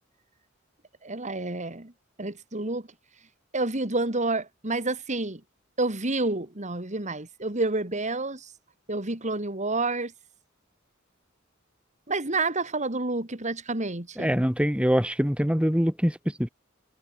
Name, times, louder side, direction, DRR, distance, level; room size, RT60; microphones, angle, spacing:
voice 1, 1.0-1.9 2.2-2.8 3.5-5.4 5.8-8.4 8.9-10.1 12.1-14.4, right 2 dB, 35° right, 3.0 m, -29 dB
voice 2, 14.2-16.5, equal, 5° right, 2.5 m, -24 dB
head